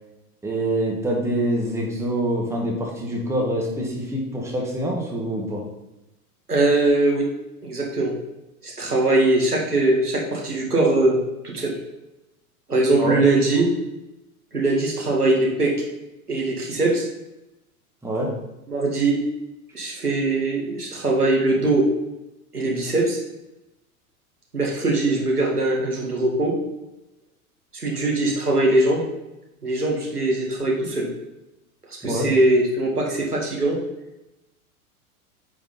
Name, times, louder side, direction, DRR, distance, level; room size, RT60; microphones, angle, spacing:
voice 1, 0.4-5.6 13.0-13.2 18.0-18.3 32.0-32.3, right 1 dB, 5° right, -2 dB, 1.6 m, -25 dB
voice 2, 6.5-7.2 7.6-8.1 8.6-11.2 11.4-11.7 12.7-13.7 14.5-15.7 16.3-17.0 18.7-19.2 19.7-21.9 22.5-23.2 24.5-26.6 27.7-29.0 29.6-31.1 32.0-33.8, right 2 dB, 90° right, -2 dB, 2.0 m, -21 dB
8.9 x 4.8 x 4.0 m, 0.96 s
figure-of-eight pair, 95°, 45 cm